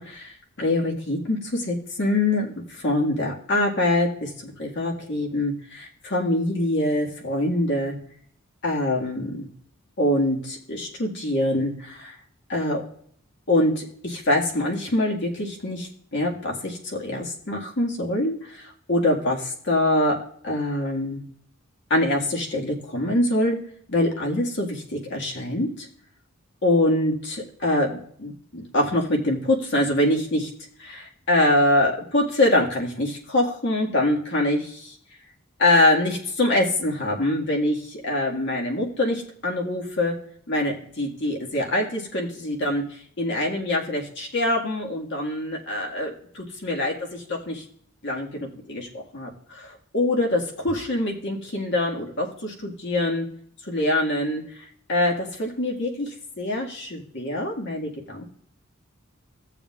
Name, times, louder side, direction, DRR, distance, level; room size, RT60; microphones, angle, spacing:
voice 1, 0.0-8.0 8.6-9.5 10.0-12.2 12.5-12.8 13.5-20.2 20.4-21.2 21.9-23.6 23.9-25.9 26.6-30.5 30.8-35.0 35.6-40.1 40.5-47.6 48.0-53.3 53.7-54.4 54.9-58.4, left 1 dB, 60° left, -1 dB, 1.9 m, -24 dB
16.0 x 7.0 x 2.4 m, 0.63 s
head